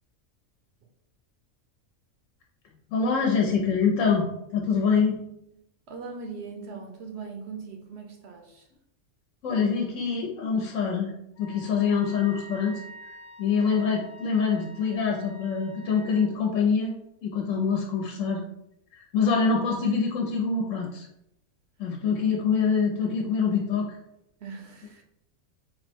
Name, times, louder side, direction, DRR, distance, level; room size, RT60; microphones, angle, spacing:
voice 1, 2.9-5.2 9.4-11.1 11.4-17.0 17.2-18.4 18.9-21.1 21.8-24.0, left 5 dB, 75° left, 0 dB, 1.0 m, -25 dB
voice 2, 5.9-8.7 24.4-25.0, right 4 dB, 65° right, 3 dB, 0.8 m, -40 dB
Wind instrument woodwind instrument, 11.3-16.3, right 1 dB, 35° left, 0.7 m, -47 dB
3.9 x 2.1 x 4.3 m, 0.78 s
omnidirectional pair, 1.4 m